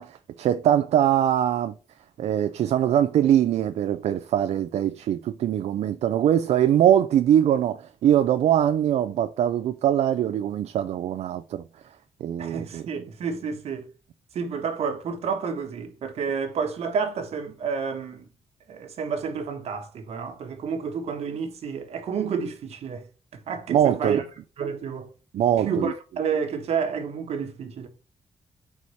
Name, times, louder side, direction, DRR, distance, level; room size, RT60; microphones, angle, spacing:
voice 1, 0.0-1.7 2.2-11.6 12.2-12.8 23.7-24.2 25.3-25.9, right 10 dB, 85° right, 0.4 m, -22 dB
voice 2, 12.4-13.9 14.3-18.3 18.7-23.0 23.5-24.2 24.6-25.1 25.6-27.9, right 6 dB, 70° right, 1.2 m, -30 dB
4.7 x 4.2 x 5.5 m
wide cardioid pair, 170°, 11 cm